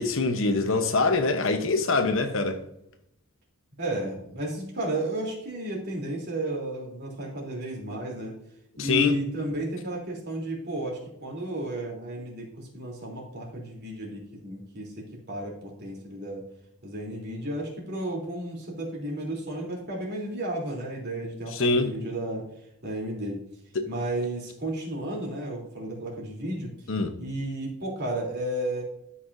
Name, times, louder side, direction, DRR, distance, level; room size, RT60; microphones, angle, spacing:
voice 1, 0.0-2.6 8.8-9.2 21.5-21.9 23.7-23.9 26.9-27.2, left 3 dB, 65° left, 1.0 m, -24 dB
voice 2, 3.8-8.3 8.8-16.5 16.8-22.4 22.8-23.4 23.9-26.7 27.2-28.8, right 1 dB, 50° right, 3.3 m, -33 dB
13.0 x 5.9 x 2.7 m
head